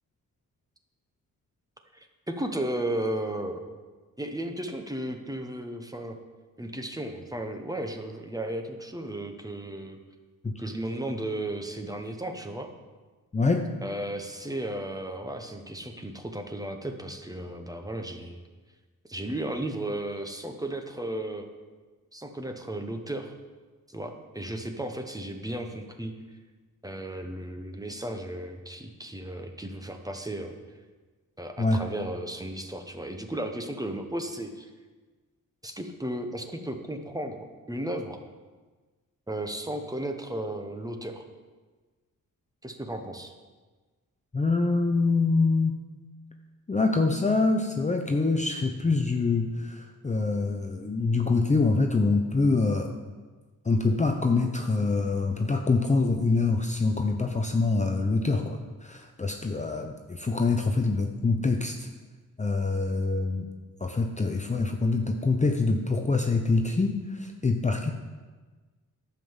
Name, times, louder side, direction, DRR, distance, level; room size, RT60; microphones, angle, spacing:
voice 1, 1.9-3.6 4.2-6.2 6.6-10.0 10.6-12.7 13.8-18.4 19.1-21.5 22.1-23.3 23.9-26.1 26.8-30.5 31.4-34.7 35.6-38.2 39.3-41.2 42.6-43.3, right 1 dB, 10° right, 5 dB, 1.0 m, -34 dB
voice 2, 13.3-13.7 31.6-31.8 44.3-45.8 46.7-52.9 53.6-61.9 62.4-63.5 63.8-67.9, left 3 dB, 20° left, 4 dB, 0.7 m, -25 dB
11.0 x 5.8 x 7.2 m, 1.4 s
wide cardioid pair, 120°, 33 cm